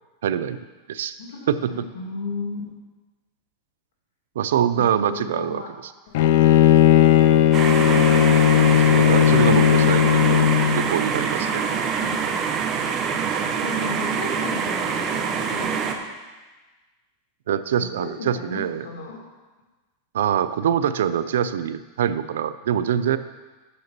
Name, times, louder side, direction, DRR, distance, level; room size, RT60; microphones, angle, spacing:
voice 1, 0.2-0.6 0.9-1.2 1.5-1.7 4.4-5.6 8.8-11.6 17.5-18.9 20.1-23.2, right 9 dB, 90° right, 13 dB, 0.4 m, -24 dB
voice 2, 1.2-2.6 4.7-5.7 6.1-6.3 9.3-10.3 11.5-12.3 13.6-16.0 17.8-19.2, left 3 dB, 90° left, 0 dB, 2.3 m, -35 dB
Bowed string instrument, 6.1-10.9, left 9 dB, 60° left, 0.5 m, -16 dB
sound 1, 7.5-16.0, right 6 dB, 30° right, 0.8 m, -25 dB
6.8 x 6.7 x 6.7 m, 1.2 s
supercardioid pair, 150°, 0 cm